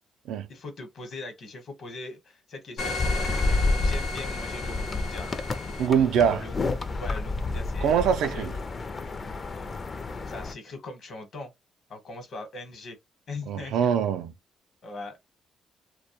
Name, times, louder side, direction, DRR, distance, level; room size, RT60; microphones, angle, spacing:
voice 1, 0.5-5.3 5.7-5.9 6.2-6.6 7.0-7.9 8.3-8.5 10.3-11.5 11.9-13.0 13.3-13.9 14.8-15.2, left 2 dB, 60° left, 1.0 m, -40 dB
sound 1, 2.8-5.9, left 3 dB, 85° left, 0.9 m, -35 dB
sound 2, 2.8-10.5, left 3 dB, 35° left, 0.4 m, -30 dB
voice 2, 5.8-6.4 7.8-8.5 13.5-14.3, right 8 dB, 85° right, 0.3 m, -23 dB
2.2 x 2.1 x 2.8 m
cardioid pair, 90°, 0 cm